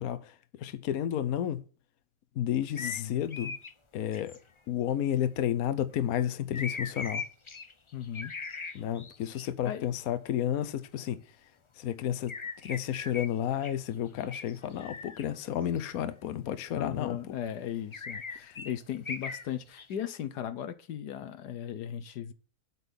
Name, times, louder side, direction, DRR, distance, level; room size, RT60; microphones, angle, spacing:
voice 1, 0.0-1.6 2.4-3.5 3.9-4.4 4.7-7.2 8.7-11.2 11.8-12.3 12.6-17.2 18.6-18.7, left 10 dB, 65° left, 1.2 m, -31 dB
voice 2, 2.8-3.2 7.9-8.3 9.6-9.9 16.7-22.3, left 10 dB, 85° left, 1.4 m, -37 dB
sound 1, 2.8-3.0 3.3-3.7 4.1-4.4 6.5-9.5 12.3-13.3 13.6-13.7 14.2-15.2 15.8-15.9 17.9-19.4 19.8-19.9, left 4 dB, 40° left, 0.4 m, -39 dB
8.2 x 5.9 x 6.9 m
omnidirectional pair, 1.7 m